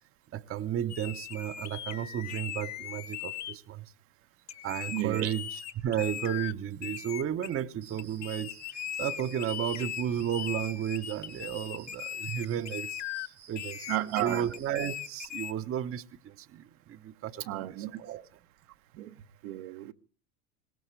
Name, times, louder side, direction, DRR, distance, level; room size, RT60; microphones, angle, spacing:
voice 1, 0.3-3.9 4.6-8.6 9.0-13.0 13.5-18.2, right 10 dB, 30° right, 0.9 m, -33 dB
sound 1, 0.9-3.5 4.5-6.5 6.8-7.5 8.0-13.3 13.6-15.5, left 10 dB, 35° left, 1.3 m, -39 dB
voice 2, 4.9-5.3 13.9-14.4 17.5-18.0 19.0-19.1 19.4-19.9, right 14 dB, 65° right, 1.2 m, -32 dB
Cricket, 7.8-15.3, right 7 dB, 90° right, 4.2 m, -55 dB
22.0 x 18.0 x 3.3 m
hypercardioid pair, 90°, 47 cm